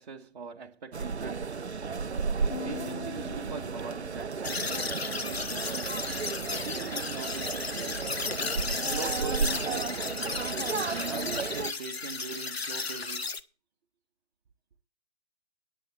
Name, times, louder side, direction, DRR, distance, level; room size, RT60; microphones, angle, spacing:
voice 1, 0.0-1.9 2.6-6.0 6.6-8.0 8.8-10.3 11.1-13.3, right 5 dB, 40° right, 1.3 m, -42 dB
sound 1, 0.9-11.7, right 5 dB, 90° right, 0.6 m, -33 dB
sound 2, 2.5-4.9, left 7 dB, 25° left, 1.2 m, -43 dB
sound 3, 4.4-13.4, left 4 dB, 70° left, 1.3 m, -34 dB
9.6 x 8.8 x 7.0 m
figure-of-eight pair, 140°, 32 cm